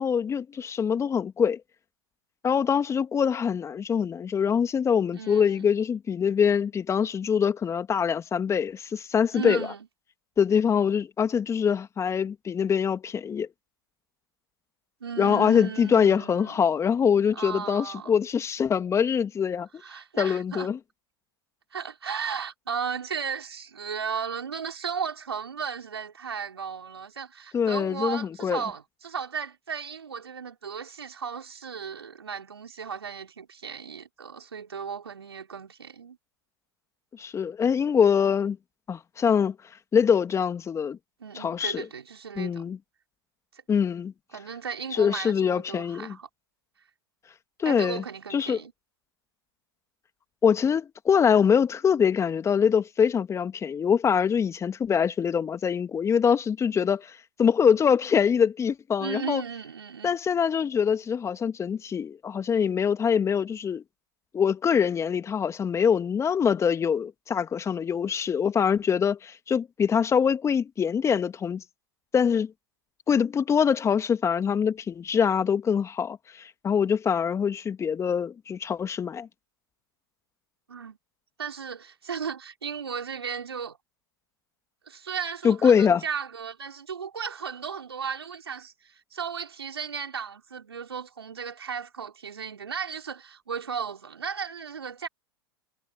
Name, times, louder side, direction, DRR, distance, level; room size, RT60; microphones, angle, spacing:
voice 1, 0.0-1.6 2.4-9.7 10.4-13.5 15.2-19.7 20.2-20.8 27.5-28.6 37.2-38.6 38.9-39.6 39.9-41.0 41.3-41.9 42.4-42.8 43.7-44.1 44.9-46.2 47.6-48.0 48.3-48.6 50.4-59.4 60.0-63.8 64.3-71.6 72.1-72.5 73.1-79.3 85.4-86.0, left 7 dB, 20° left, 2.2 m, -24 dB
voice 2, 5.1-5.7 9.3-9.9 15.0-16.7 17.3-18.2 19.8-20.7 21.7-36.2 41.2-42.7 44.3-46.3 47.6-48.7 56.8-56.9 59.0-60.2 80.7-81.0 81.4-83.8 84.9-95.1, right 6 dB, 80° right, 5.8 m, -35 dB
figure-of-eight pair, 95°, 13 cm